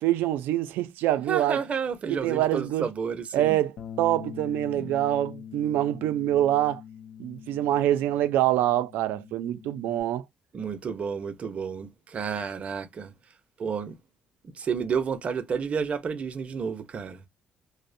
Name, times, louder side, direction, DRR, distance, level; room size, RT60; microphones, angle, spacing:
voice 1, 0.0-1.6 2.1-2.9 3.3-3.7 4.0-6.8 7.2-10.2, right 13 dB, 85° right, 0.4 m, -25 dB
voice 2, 1.2-3.6 4.8-4.9 10.5-13.1 13.6-14.0 14.5-17.2, right 6 dB, 40° right, 0.6 m, -31 dB
Bass guitar, 3.8-10.0, left 8 dB, 65° left, 0.4 m, -43 dB
2.5 x 2.1 x 2.5 m
cardioid pair, 110°, 3 cm